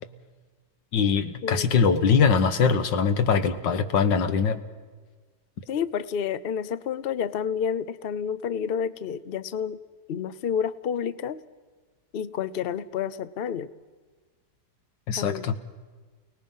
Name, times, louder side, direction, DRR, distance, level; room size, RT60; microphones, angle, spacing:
voice 1, 0.9-4.6 15.1-15.6, left 6 dB, 80° left, 9 dB, 1.9 m, -22 dB
voice 2, 5.7-9.8 10.1-11.4 12.1-13.7 15.1-15.6, left 7 dB, 55° left, 15 dB, 0.6 m, -29 dB
29.5 x 19.0 x 5.6 m, 1.4 s
omnidirectional pair, 1.9 m